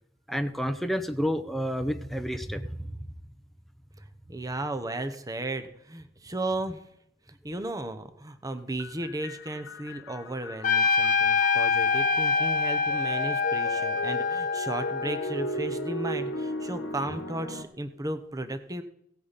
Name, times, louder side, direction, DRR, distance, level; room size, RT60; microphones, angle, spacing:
voice 1, 0.3-2.8, equal, ahead, 7 dB, 0.6 m, -29 dB
voice 2, 4.3-6.8 7.3-18.8, right 2 dB, 20° right, 9 dB, 0.9 m, -35 dB
sound 1, 8.8-17.6, left 1 dB, 65° left, 1.2 m, -36 dB
Trumpet, 10.6-15.3, left 5 dB, 45° left, 0.8 m, -25 dB
17.0 x 8.4 x 4.1 m, 0.73 s
head